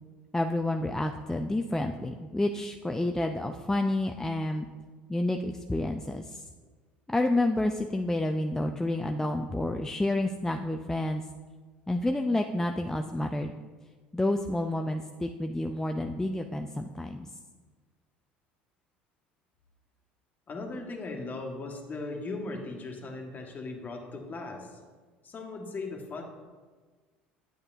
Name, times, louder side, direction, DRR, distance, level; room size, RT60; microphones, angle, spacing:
voice 1, 0.3-4.7 5.1-6.4 7.1-11.2 11.9-13.5 14.1-17.3, left 1 dB, 10° left, 4 dB, 0.4 m, -29 dB
voice 2, 20.5-24.8 25.2-26.2, left 3 dB, 35° left, 2 dB, 1.5 m, -38 dB
8.7 x 7.9 x 2.7 m, 1.4 s
hypercardioid pair, 65°, 5 cm